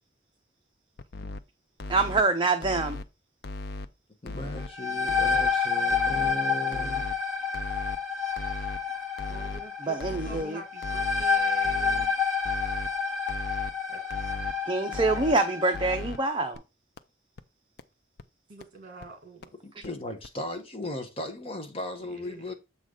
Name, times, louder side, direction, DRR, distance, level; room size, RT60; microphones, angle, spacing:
sound 1, 1.0-1.4 1.8-2.2 2.6-3.0 3.4-3.9 4.3-4.7 5.1-5.5 5.9-6.3 6.7-7.2 7.5-8.0 8.4-8.8 9.2-9.6 10.0-10.4 10.8-11.3 11.6-12.1 12.4-12.9 13.3-13.7 14.1-14.5 14.9-15.4 15.7-16.2 16.6-16.7 17.0-17.1 17.4-17.5 17.8-17.9 18.2-18.3 18.6-18.7 19.0-19.1 19.4-19.5 19.8-19.9 20.2-20.3, left 2 dB, 55° left, 0.6 m, -37 dB
voice 1, 1.9-3.0 9.8-10.6 14.7-16.6, right 3 dB, 25° right, 0.7 m, -25 dB
voice 2, 4.2-7.1 19.6-22.5, left 1 dB, 30° left, 1.1 m, -37 dB
sound 2, 4.6-16.1, left 5 dB, ahead, 2.2 m, -29 dB
voice 3, 9.3-12.1 13.9-14.0 18.5-19.5 22.1-22.5, right 2 dB, 45° right, 2.3 m, -46 dB
7.4 x 4.0 x 4.9 m
head